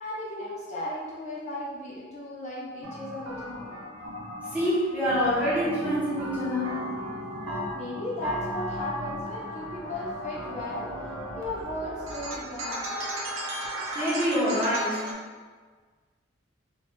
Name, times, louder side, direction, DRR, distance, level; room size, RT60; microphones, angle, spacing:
voice 1, 0.0-3.7 7.7-10.9 11.4-12.9, left 1 dB, 35° left, -7 dB, 0.6 m, -36 dB
sound 1, 2.8-15.1, right 1 dB, 85° right, 0.5 m, -36 dB
voice 2, 4.5-6.8 13.9-15.0, equal, 5° right, -9 dB, 0.7 m, -26 dB
sound 2, 5.8-11.6, right 1 dB, 30° right, 0.3 m, -41 dB
3.0 x 2.2 x 3.0 m, 1.5 s
head